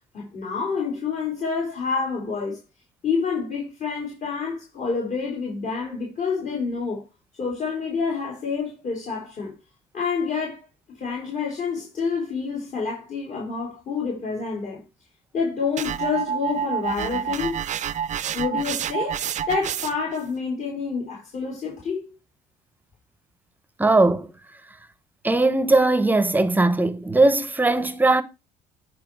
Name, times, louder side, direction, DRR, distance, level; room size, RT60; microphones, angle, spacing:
voice 1, 0.1-2.6 3.0-7.1 7.4-9.6 9.9-10.6 10.9-14.8 15.3-17.6 18.3-19.2 19.5-22.1, left 5 dB, 45° left, 3.6 m, -28 dB
sound 1, 15.8-20.2, right 8 dB, 45° right, 0.5 m, -28 dB
voice 2, 23.8-24.3 25.2-28.2, right 2 dB, 10° right, 0.8 m, -19 dB
9.2 x 4.8 x 4.6 m
cardioid pair, 110°, 17 cm